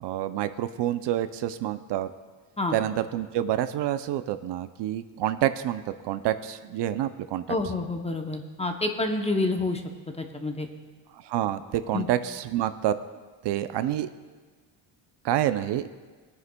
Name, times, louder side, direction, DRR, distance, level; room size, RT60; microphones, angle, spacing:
voice 1, 0.0-2.1 2.7-7.4 11.2-13.0 13.4-14.1 15.2-15.9, right 12 dB, 60° right, 11 dB, 0.5 m, -28 dB
voice 2, 7.5-9.8 10.2-10.7 11.9-12.1, left 2 dB, 15° left, 4 dB, 0.6 m, -28 dB
21.0 x 9.5 x 2.2 m, 1.4 s
cardioid pair, 140°, 49 cm